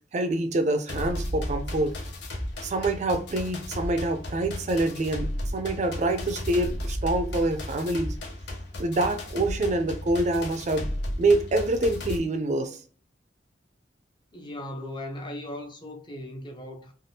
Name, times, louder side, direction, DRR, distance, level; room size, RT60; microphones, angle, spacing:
voice 1, 0.1-2.0 2.6-8.1 8.8-10.9 11.2-12.8, right 2 dB, 40° right, 0.3 m, -26 dB
sound 1, 0.9-12.2, left 1 dB, 65° left, 0.7 m, -34 dB
voice 2, 14.3-16.9, left 1 dB, 25° left, 0.5 m, -38 dB
3.4 x 2.3 x 2.7 m
head